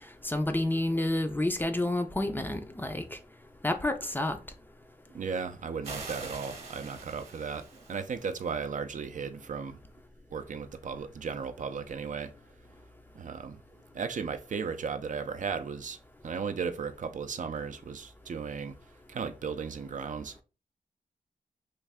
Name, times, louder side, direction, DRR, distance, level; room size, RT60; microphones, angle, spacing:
voice 1, 0.2-3.2 3.6-4.4, left 1 dB, 15° left, 0.4 m, -29 dB
voice 2, 5.1-9.8 10.3-12.3 13.1-13.6 13.9-16.0 16.2-18.7 19.1-20.4, right 5 dB, 55° right, 0.4 m, -35 dB
sound 1, 5.8-8.4, right 3 dB, 40° right, 0.9 m, -44 dB
3.2 x 2.5 x 3.4 m
wide cardioid pair, 105°, 15 cm